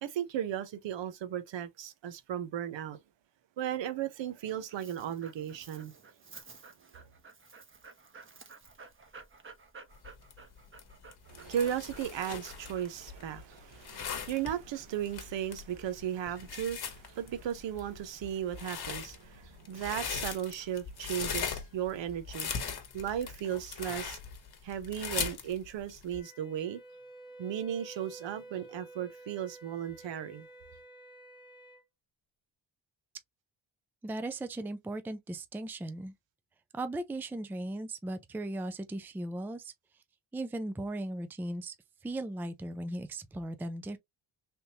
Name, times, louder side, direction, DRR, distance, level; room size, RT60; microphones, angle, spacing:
voice 1, 0.0-3.0 3.6-5.9 11.3-24.2 24.6-26.8 27.4-30.5, right 10 dB, 70° right, 0.8 m, -36 dB
Dog, 4.2-15.0, right 4 dB, 25° right, 0.9 m, -54 dB
sound 1, 9.9-26.2, left 7 dB, 50° left, 1.1 m, -39 dB
Wind instrument woodwind instrument, 26.1-31.8, right 2 dB, 10° left, 0.8 m, -51 dB
voice 2, 34.0-36.1 36.7-39.7 40.3-41.7 42.0-44.0, right 1 dB, 5° right, 0.4 m, -37 dB
3.5 x 2.7 x 2.8 m
cardioid pair, 75°, 47 cm